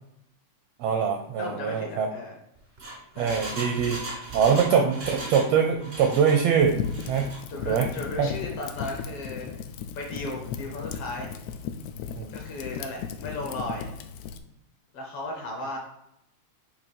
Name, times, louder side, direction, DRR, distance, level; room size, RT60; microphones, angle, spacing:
voice 1, 0.8-2.1 3.2-4.0 4.3-7.3 7.7-7.9 8.2-8.3 12.2-12.3, right 7 dB, 80° right, 4 dB, 1.4 m, -23 dB
voice 2, 1.4-2.4 3.2-3.4 4.5-4.8 7.5-9.5 10.0-11.3 12.3-13.9 14.9-15.8, left 2 dB, 65° left, 0 dB, 1.6 m, -35 dB
Engine, 2.6-5.5 5.8-6.4 6.8-7.4 7.8-7.9, right 1 dB, 50° right, 0.6 m, -37 dB
Fire, 6.6-14.4, left 7 dB, 80° left, 1.5 m, -36 dB
8.5 x 2.8 x 4.4 m, 0.83 s
omnidirectional pair, 3.4 m